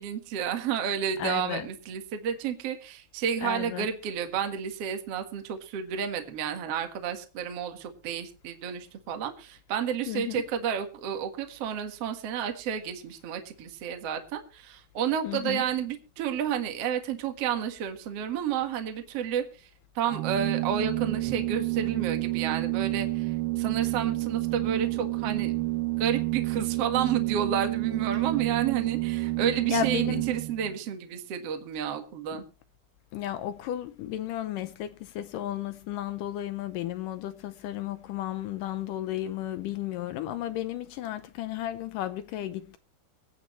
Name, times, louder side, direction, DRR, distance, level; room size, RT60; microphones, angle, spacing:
voice 1, 0.0-19.7 20.0-25.5 26.0-32.4, right 8 dB, 50° right, 2.2 m, -31 dB
voice 2, 1.2-1.7 3.4-3.9 10.1-10.4 15.2-15.6 29.7-30.3 33.1-42.8, left 12 dB, 75° left, 2.1 m, -33 dB
Organ, 20.0-30.8, right 21 dB, 75° right, 2.7 m, -29 dB
25.0 x 8.8 x 3.1 m
omnidirectional pair, 4.3 m